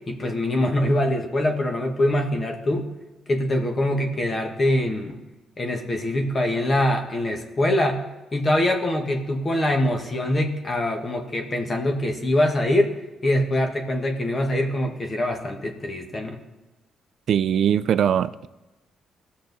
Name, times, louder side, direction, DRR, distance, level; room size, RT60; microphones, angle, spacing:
voice 1, 0.1-2.9 3.3-5.2 5.6-8.1 8.3-12.9 13.2-16.4, left 1 dB, 35° left, 3 dB, 1.4 m, -23 dB
voice 2, 17.3-18.5, right 9 dB, 65° right, 16 dB, 0.4 m, -21 dB
16.5 x 6.5 x 4.0 m, 1.1 s
cardioid pair, 90°, 0 cm